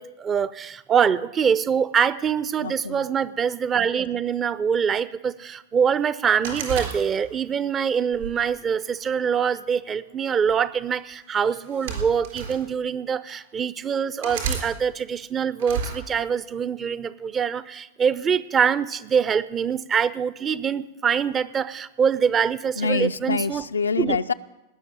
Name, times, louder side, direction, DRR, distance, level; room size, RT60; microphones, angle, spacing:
voice 1, 0.0-23.6 24.0-24.2, right 7 dB, 25° right, 17 dB, 0.6 m, -24 dB
voice 2, 2.6-3.1 22.8-24.3, left 4 dB, 75° left, 12 dB, 0.5 m, -26 dB
sound 1, 6.4-7.5 8.1-9.3 10.3-10.5 11.5-12.6 13.3-13.4 14.2-14.7 15.6-16.0, right 6 dB, 55° right, 3.9 m, -31 dB
18.5 x 6.6 x 9.4 m, 0.95 s
figure-of-eight pair, 90°, 0 cm